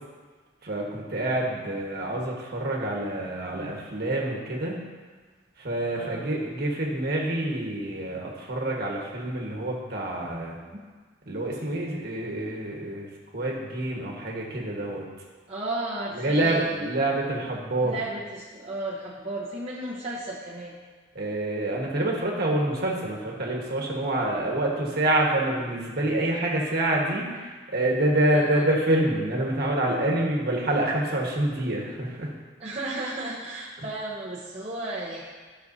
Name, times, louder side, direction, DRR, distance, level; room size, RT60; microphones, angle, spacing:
voice 1, 0.6-4.8 5.6-10.6 11.3-13.1 13.3-15.1 16.2-18.0 21.1-32.3, right 1 dB, 55° right, -2 dB, 1.5 m, -27 dB
voice 2, 5.9-6.3 10.7-10.9 15.5-16.9 17.8-20.8 28.3-28.7 32.6-35.2, right 2 dB, 35° right, -6 dB, 0.9 m, -34 dB
13.5 x 6.3 x 2.7 m, 1.4 s
head